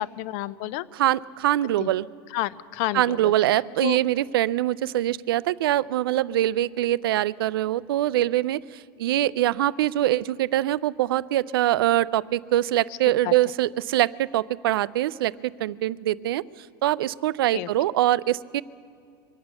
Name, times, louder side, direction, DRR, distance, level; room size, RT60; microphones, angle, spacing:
voice 1, 0.0-0.9 1.8-1.9 2.3-3.3 3.8-4.0 13.2-13.3 17.5-17.7, left 15 dB, 40° left, 18 dB, 0.4 m, -30 dB
voice 2, 0.9-2.1 2.9-18.6, right 14 dB, 85° right, 19 dB, 0.4 m, -24 dB
24.0 x 8.8 x 6.9 m, 2.3 s
supercardioid pair, 165°, 12 cm